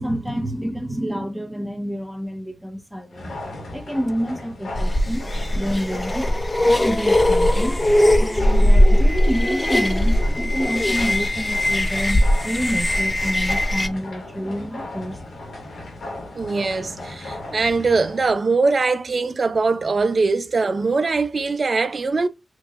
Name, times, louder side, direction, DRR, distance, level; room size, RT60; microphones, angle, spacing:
voice 1, 0.0-5.2 5.5-6.3 6.6-7.8 8.1-15.3, equal, ahead, 1.1 m, -28 dB
sound 1, 3.1-18.4, left 2 dB, 85° left, 1.7 m, -36 dB
sound 2, 4.8-13.9, left 1 dB, 20° left, 0.5 m, -19 dB
voice 2, 16.4-22.3, right 4 dB, 50° right, 0.5 m, -21 dB
4.6 x 2.7 x 2.4 m
cardioid pair, 80°, 0 cm